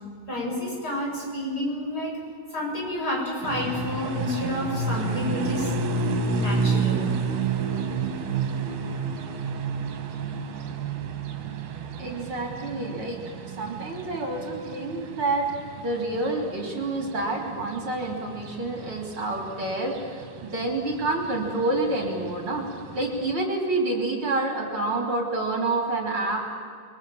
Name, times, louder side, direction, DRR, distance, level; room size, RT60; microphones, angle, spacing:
voice 1, 0.3-2.2 2.5-5.7 6.3-7.0, left 1 dB, 25° left, -2 dB, 8.1 m, -30 dB
sound 1, 3.4-23.3, right 4 dB, 60° right, 3.1 m, -31 dB
voice 2, 12.0-13.2 13.6-15.4 15.8-22.6 22.9-26.5, right 2 dB, 35° right, 1 dB, 4.0 m, -28 dB
29.5 x 23.0 x 7.2 m, 2.2 s
omnidirectional pair, 4.2 m